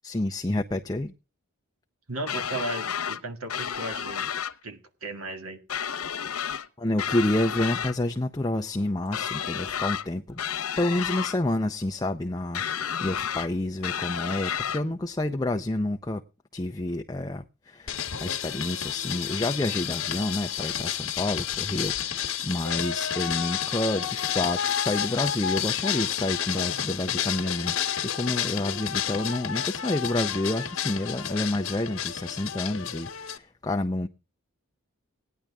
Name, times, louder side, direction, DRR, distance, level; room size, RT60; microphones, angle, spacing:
voice 1, 0.0-1.1 6.8-10.4 10.8-16.2 16.5-17.9 18.2-27.8 28.0-34.1, left 1 dB, 20° left, 0.6 m, -29 dB
voice 2, 2.1-4.3 4.6-5.6, right 2 dB, 80° right, 2.0 m, -35 dB
sound 1, 2.3-3.2 3.5-4.5 5.7-6.7 7.0-7.9 9.1-10.1 10.4-11.4 12.5-13.5 13.8-14.8, left 8 dB, 85° left, 1.0 m, -31 dB
sound 2, 17.9-33.4, left 9 dB, 65° left, 1.3 m, -30 dB
17.5 x 10.5 x 3.5 m
head